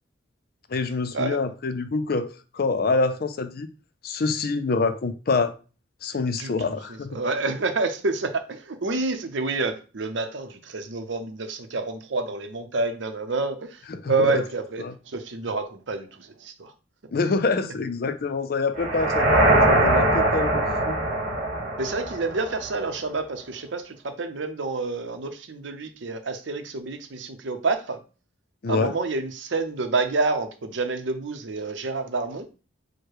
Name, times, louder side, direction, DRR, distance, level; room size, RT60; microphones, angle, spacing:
voice 1, 0.7-3.7 4.0-5.5 6.0-7.1 13.9-14.4 14.8-14.9 17.1-20.9 28.6-28.9, left 4 dB, 50° left, 0.4 m, -26 dB
voice 2, 6.3-16.7 21.8-28.0 28.7-32.5, right 3 dB, 65° right, 0.7 m, -28 dB
sound 1, 18.8-22.9, right 1 dB, 40° right, 1.4 m, -22 dB
4.7 x 2.1 x 4.7 m
head